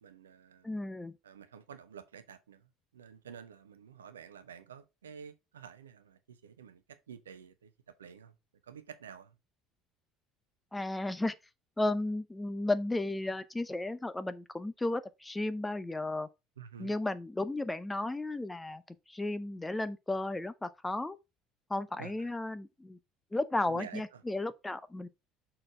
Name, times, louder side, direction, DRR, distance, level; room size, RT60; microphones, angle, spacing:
voice 1, 0.0-0.7 1.2-2.6 2.9-7.7 8.0-8.3 8.6-9.4 16.6-16.9 22.0-22.3 23.6-24.2, right 7 dB, 75° right, 0.7 m, -50 dB
voice 2, 0.6-1.1 10.7-11.3 11.8-16.3 16.8-18.8 19.1-21.2 21.7-23.0 23.3-25.1, left 2 dB, 10° left, 0.6 m, -34 dB
6.4 x 4.4 x 4.4 m
figure-of-eight pair, 60°, 0 cm